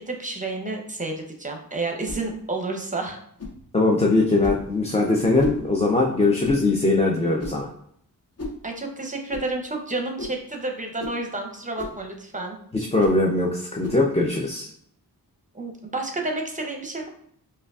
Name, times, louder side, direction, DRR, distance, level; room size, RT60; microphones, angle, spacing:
voice 1, 0.0-3.2 8.6-12.6 15.5-17.1, right 2 dB, 20° right, 2 dB, 0.7 m, -30 dB
sound 1, 2.0-2.3 3.4-3.6 4.4-4.7 5.4-5.6 6.4-6.7 7.4-7.7 8.4-8.6 9.3-9.5 10.2-10.4 11.0-11.2 11.8-12.0 13.0-13.2 13.8-14.0, left 2 dB, 40° left, 0.8 m, -34 dB
voice 2, 3.7-7.7 12.7-14.7, left 2 dB, 15° left, -1 dB, 0.5 m, -21 dB
4.9 x 2.3 x 2.4 m, 0.67 s
wide cardioid pair, 60°, 38 cm